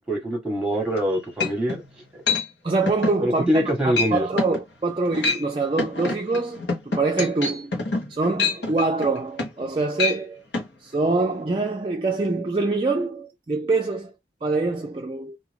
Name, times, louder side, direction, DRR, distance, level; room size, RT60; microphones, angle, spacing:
voice 1, 0.0-1.8 3.2-4.3, equal, 5° right, 1.0 m, -24 dB
sound 1, 1.0-1.1 1.4-1.8 2.3-2.5 2.9-3.2 3.5-3.7 4.0-4.1 4.4-4.6 5.1-5.5 5.8-9.7 10.0-10.2 10.5-10.7, left 3 dB, 85° left, 1.1 m, -26 dB
voice 2, 2.6-7.8 8.1-10.4 10.8-14.1 14.4-15.4, right 3 dB, 30° right, 0.3 m, -25 dB
2.6 x 2.4 x 3.3 m
head